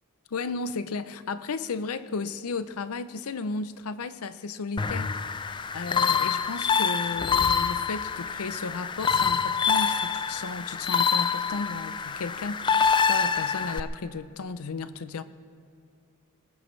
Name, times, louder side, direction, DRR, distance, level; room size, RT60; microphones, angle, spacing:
voice 1, 0.3-5.1 5.7-12.7 13.0-15.2, left 4 dB, 70° left, 13 dB, 0.5 m, -34 dB
sound 1, 4.8-13.8, left 6 dB, 20° left, 0.3 m, -26 dB
19.5 x 19.5 x 3.2 m, 2.3 s
head